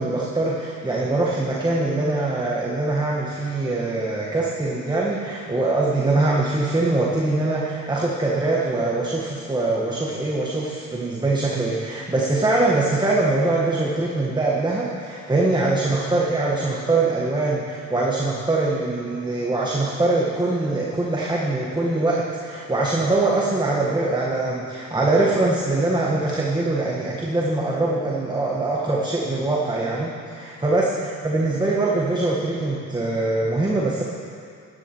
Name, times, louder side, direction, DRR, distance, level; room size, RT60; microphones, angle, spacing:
voice 1, 0.0-34.0, right 2 dB, 15° right, -3 dB, 1.5 m, -23 dB
16.0 x 11.0 x 4.6 m, 2.3 s
cardioid pair, 90°, 30 cm